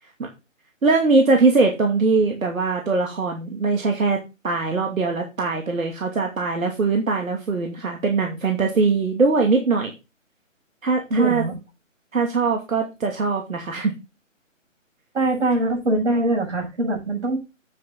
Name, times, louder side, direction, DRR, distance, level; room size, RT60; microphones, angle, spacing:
voice 1, 0.8-4.2 4.4-9.9 10.8-11.4 12.1-13.9, right 4 dB, 85° right, 2 dB, 2.5 m, -21 dB
voice 2, 11.1-11.5 15.1-17.4, right 2 dB, 60° right, 2 dB, 7.0 m, -22 dB
8.9 x 7.6 x 3.9 m, 0.27 s
hypercardioid pair, 170°, 39 cm